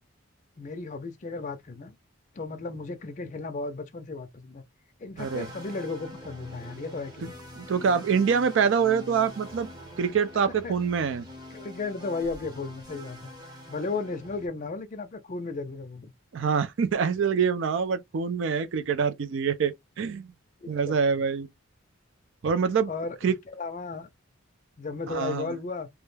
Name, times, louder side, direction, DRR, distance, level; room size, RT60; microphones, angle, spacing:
voice 1, 0.6-2.0 2.3-4.6 5.0-7.3 10.6-10.7 11.5-13.3 13.7-16.1 20.6-21.2 22.9-24.1 24.8-25.9, left 3 dB, 35° left, 0.4 m, -35 dB
sound 1, 5.2-14.5, left 1 dB, 20° right, 0.7 m, -44 dB
voice 2, 5.2-5.5 7.6-9.7 10.0-11.3 16.3-20.3 20.7-21.5 22.4-22.9 23.2-23.4 25.1-25.5, right 6 dB, 60° right, 0.4 m, -25 dB
2.2 x 2.1 x 3.1 m
head